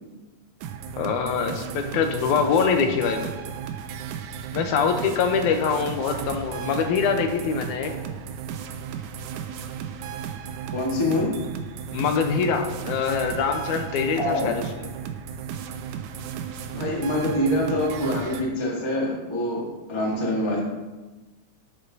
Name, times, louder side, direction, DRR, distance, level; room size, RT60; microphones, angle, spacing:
sound 1, 0.6-18.4, right 8 dB, 85° right, 1.9 m, -35 dB
voice 1, 1.0-3.3 4.5-7.9 11.9-14.9, left 6 dB, 90° left, 5 dB, 2.2 m, -24 dB
voice 2, 10.7-11.4 14.2-14.6 16.7-20.6, left 1 dB, 40° left, -3 dB, 0.4 m, -25 dB
11.0 x 6.5 x 2.7 m, 1.2 s
omnidirectional pair, 3.4 m